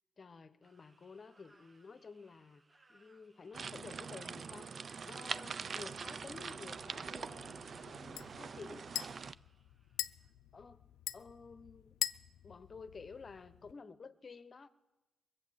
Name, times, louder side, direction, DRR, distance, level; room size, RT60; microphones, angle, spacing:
voice 1, 0.2-2.6 2.9-4.7 5.1-8.9 10.5-10.8 11.1-12.0 12.4-14.7, left 4 dB, 35° left, 1.0 m, -52 dB
sound 1, 0.6-10.3, right 2 dB, 25° right, 1.5 m, -69 dB
sound 2, 3.5-9.3, right 5 dB, 45° right, 0.4 m, -44 dB
sound 3, 5.9-13.7, left 13 dB, 85° left, 0.4 m, -45 dB
21.5 x 8.3 x 7.6 m
cardioid pair, 90°, 0 cm